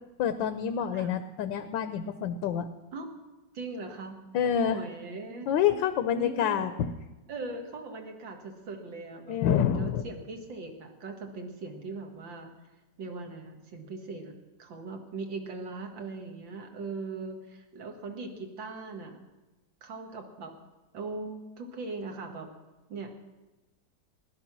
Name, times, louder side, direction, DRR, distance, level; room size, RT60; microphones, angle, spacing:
voice 1, 0.2-2.7 4.3-4.8 5.5-6.9 9.3-10.0, left 9 dB, 85° left, 10 dB, 1.4 m, -27 dB
voice 2, 3.5-4.2 4.5-5.5 6.1-6.7 7.3-9.4 9.8-12.5 13.0-14.3 14.6-19.2 19.8-20.5 20.9-22.5 22.9-23.3, right 3 dB, 90° right, 4 dB, 2.5 m, -39 dB
16.0 x 11.5 x 6.1 m, 1.1 s
omnidirectional pair, 2.0 m